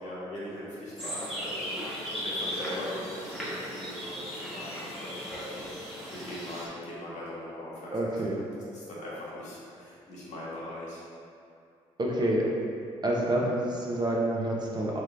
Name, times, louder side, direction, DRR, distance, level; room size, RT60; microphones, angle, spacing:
voice 1, 0.0-5.7 6.1-7.9 8.2-8.4 8.7-11.0, left 1 dB, 60° left, -8 dB, 1.4 m, -40 dB
sound 1, 1.0-6.7, equal, ahead, 1.3 m, -37 dB
voice 2, 7.9-8.4 12.0-12.4 13.0-15.0, right 1 dB, 30° right, -3 dB, 0.8 m, -28 dB
3.6 x 3.2 x 3.4 m, 2.6 s
supercardioid pair, 55°, 13 cm